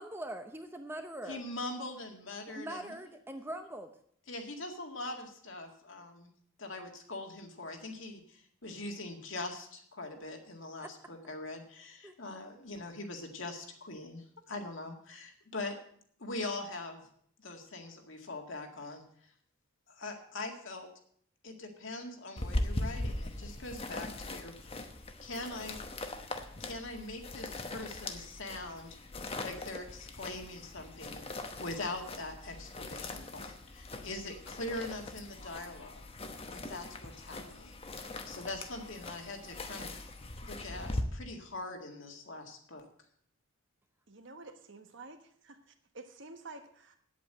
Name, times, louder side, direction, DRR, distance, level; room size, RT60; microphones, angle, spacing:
voice 1, 0.0-1.4 2.5-3.9 10.8-10.9 12.0-12.1, right 1 dB, 10° right, 6 dB, 0.7 m, -42 dB
voice 2, 1.3-2.9 4.3-6.3 6.6-15.8 16.2-17.1 17.4-19.3 19.9-20.9 21.4-24.7 25.2-25.8 26.6-29.0 29.4-36.0 36.5-40.0 40.4-42.8, left 2 dB, 60° left, 3 dB, 2.0 m, -42 dB
sound 1, 22.4-41.0, left 2 dB, 25° left, 0.9 m, -41 dB
voice 3, 44.1-45.2 45.4-47.0, right 3 dB, 55° right, 7 dB, 1.3 m, -50 dB
9.3 x 8.5 x 7.8 m, 0.63 s
head